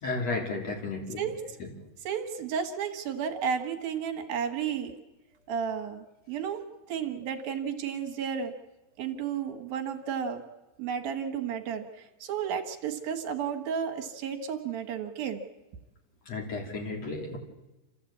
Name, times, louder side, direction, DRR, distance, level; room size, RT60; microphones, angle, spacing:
voice 1, 0.0-1.3 1.6-1.7 16.3-17.4, left 3 dB, 45° left, 1 dB, 3.8 m, -33 dB
voice 2, 2.0-5.0 5.5-6.6 6.9-8.5 9.0-10.4 10.8-11.9 12.2-15.4, right 7 dB, 70° right, 4 dB, 3.2 m, -32 dB
28.5 x 14.5 x 8.5 m, 1.0 s
omnidirectional pair, 4.4 m